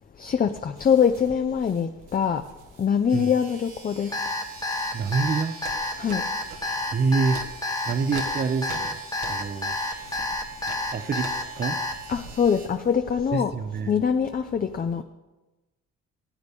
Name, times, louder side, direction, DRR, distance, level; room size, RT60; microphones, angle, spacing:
voice 1, 0.2-2.4 2.8-4.1 6.0-6.2 12.1-13.5 13.9-15.0, left 7 dB, 30° left, 7 dB, 0.5 m, -23 dB
sound 1, 0.8-3.8 4.4-6.8 7.2-13.4, right 4 dB, 90° right, 1.6 m, -45 dB
sound 2, 3.1-12.7, right 4 dB, 60° right, 2.4 m, -46 dB
Alarm, 4.1-11.9, left 2 dB, 10° left, 1.0 m, -29 dB
voice 2, 4.9-5.5 6.9-7.4 7.9-9.0 9.3-9.8 10.9-11.8 13.3-13.9, right 4 dB, 35° right, 12 dB, 0.7 m, -26 dB
16.0 x 8.1 x 3.5 m, 1.1 s
cardioid pair, 90°, 30 cm